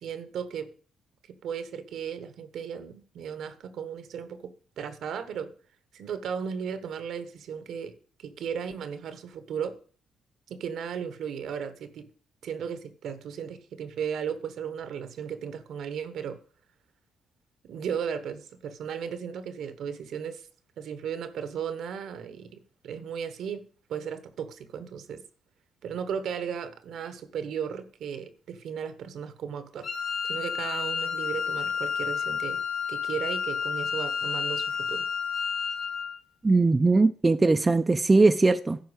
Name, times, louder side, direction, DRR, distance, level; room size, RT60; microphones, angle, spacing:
voice 1, 0.0-0.7 1.4-5.5 5.9-7.9 8.2-9.7 10.5-12.1 12.4-16.4 17.6-20.4 20.8-23.6 23.9-25.2 25.8-29.9 30.2-32.6 32.9-35.1, right 7 dB, 70° right, 1.2 m, -35 dB
Wind instrument woodwind instrument, 29.8-36.2, left 6 dB, 65° left, 2.3 m, -30 dB
voice 2, 36.4-38.8, right 3 dB, 20° right, 0.6 m, -20 dB
10.5 x 4.6 x 8.0 m
cardioid pair, 90°, 0 cm